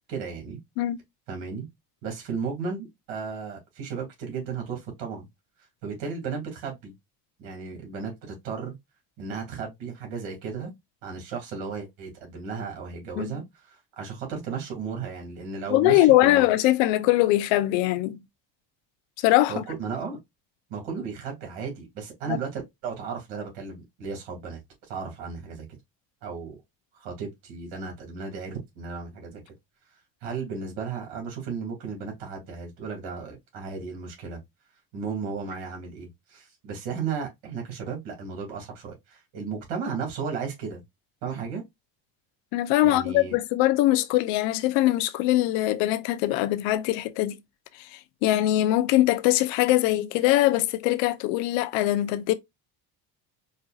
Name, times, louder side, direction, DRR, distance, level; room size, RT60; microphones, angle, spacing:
voice 1, 0.1-0.6 1.3-1.7 2.0-5.3 5.8-6.9 7.4-8.8 9.2-10.7 11.0-16.5 19.5-20.2 20.7-24.6 24.9-25.7 26.2-26.6 27.0-29.4 30.2-34.4 34.9-40.8 41.2-41.6 42.8-43.3, right 5 dB, 75° right, 2.5 m, -34 dB
voice 2, 15.7-18.2 19.2-19.6 22.3-22.4 42.5-47.3 47.8-52.3, left 15 dB, 80° left, 0.7 m, -22 dB
5.3 x 2.5 x 2.3 m
supercardioid pair, 90°, 44 cm